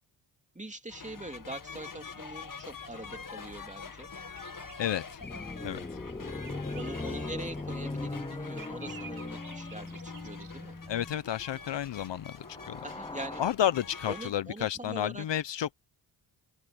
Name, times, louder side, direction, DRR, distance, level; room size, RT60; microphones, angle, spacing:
voice 1, 0.5-4.1 6.5-10.7 12.8-13.4 14.1-15.2, right 2 dB, 15° right, 2.7 m, -43 dB
sound 1, 0.9-14.3, left 5 dB, 40° left, 2.2 m, -45 dB
sound 2, 4.1-12.1, right 9 dB, 70° right, 2.6 m, -54 dB
voice 2, 4.8-5.2 5.6-5.8 10.9-12.4 12.7-12.8 13.4-15.8, left 10 dB, 60° left, 0.9 m, -31 dB
sound 3, 5.2-11.2 12.3-13.5, left 2 dB, 10° left, 0.7 m, -39 dB
supercardioid pair, 50°, 50 cm